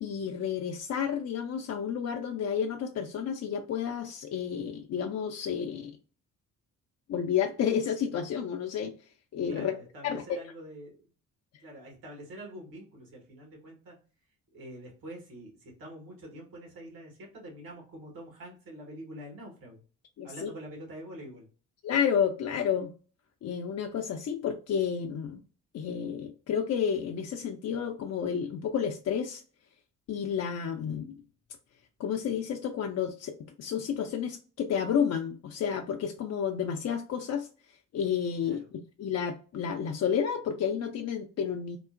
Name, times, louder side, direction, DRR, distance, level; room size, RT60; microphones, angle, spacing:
voice 1, 0.0-5.9 7.1-8.9 9.3-9.8 10.0-10.2 20.2-20.5 21.8-22.9 23.4-25.4 25.7-29.4 30.1-31.2 32.0-37.5 37.9-41.8, left 8 dB, 45° left, 0.5 m, -31 dB
voice 2, 9.5-11.0 11.6-14.0 14.5-19.8 20.2-21.5 38.4-38.7, right 1 dB, 70° right, 1.4 m, -46 dB
3.7 x 2.0 x 2.5 m
hypercardioid pair, 45°, 37 cm